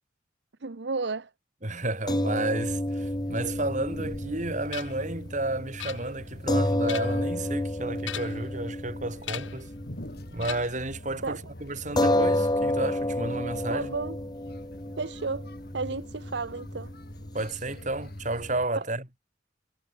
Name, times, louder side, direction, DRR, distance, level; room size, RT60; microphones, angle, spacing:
voice 1, 0.6-1.3 11.2-11.4 13.7-14.2 15.0-16.9, right 4 dB, 60° right, 0.8 m, -33 dB
voice 2, 1.6-9.7 10.3-13.9 17.3-19.0, right 2 dB, 40° right, 4.0 m, -32 dB
sound 1, 2.1-10.6 10.9-11.1 12.0-18.5, left 1 dB, 20° left, 1.8 m, -31 dB
sound 2, 2.6-18.7, equal, 55° left, 5.2 m, -46 dB
sound 3, 4.7-5.1 5.8-6.4 6.7-7.3 8.0-8.5 9.2-9.7 10.4-10.9, left 10 dB, 80° left, 1.6 m, -39 dB
head